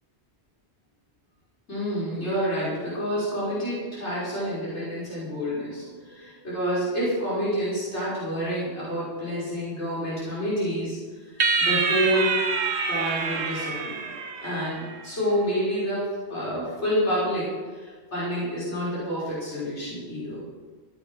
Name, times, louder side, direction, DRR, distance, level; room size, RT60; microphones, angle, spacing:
voice 1, 1.7-11.0 11.2-12.3 12.9-14.1 14.4-20.4, equal, 85° left, -10 dB, 6.0 m, -28 dB
sound 1, 11.4-15.0, right 4 dB, 80° right, 1.3 m, -26 dB
17.0 x 9.3 x 6.2 m, 1.5 s
omnidirectional pair, 1.1 m